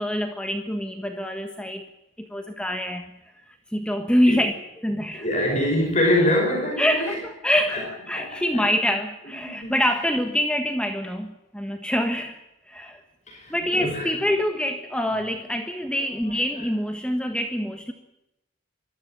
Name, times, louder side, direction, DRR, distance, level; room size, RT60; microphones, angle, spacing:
voice 1, 0.0-1.8 2.2-3.1 3.7-5.3 6.8-12.4 12.7-13.0 13.5-17.9, equal, 5° left, 5 dB, 1.3 m, -25 dB
voice 2, 5.1-7.2 7.7-7.9 8.1-8.6 9.3-9.8 13.3-14.1 15.1-15.2 16.0-16.4, left 1 dB, 35° left, 0 dB, 5.4 m, -25 dB
23.0 x 14.5 x 10.0 m, 0.93 s
head